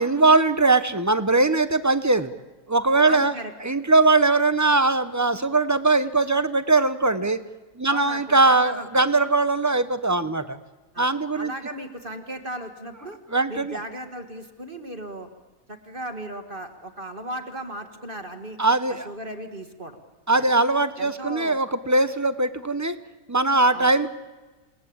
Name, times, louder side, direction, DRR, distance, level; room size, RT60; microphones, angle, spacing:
voice 1, 0.0-2.3 2.7-3.3 3.6-7.4 7.8-10.6 11.0-11.5 13.3-13.8 18.6-19.1 20.3-23.0 23.3-24.1, right 3 dB, 15° right, 12 dB, 0.7 m, -20 dB
voice 2, 3.0-3.5 7.9-8.9 10.9-13.2 13.5-15.3 15.7-18.6 18.9-20.0 20.4-20.5 21.0-21.6 23.7-23.9, right 1 dB, 35° right, 6 dB, 1.9 m, -36 dB
28.5 x 19.5 x 8.7 m, 1.2 s
omnidirectional pair, 1.6 m